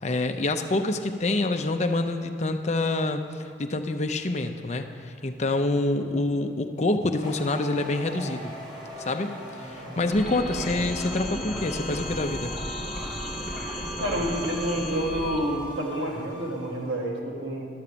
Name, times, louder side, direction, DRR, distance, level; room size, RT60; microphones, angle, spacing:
voice 1, 0.0-3.2 3.6-8.6 9.0-9.3 9.6-12.6, left 2 dB, 40° left, 6 dB, 0.6 m, -26 dB
sound 1, 7.2-16.9, right 1 dB, 25° right, 2.3 m, -40 dB
sound 2, 10.1-15.4, left 1 dB, ahead, 2.0 m, -34 dB
voice 2, 14.0-17.7, equal, 75° right, -1 dB, 1.8 m, -29 dB
11.5 x 7.2 x 6.8 m, 2.3 s
head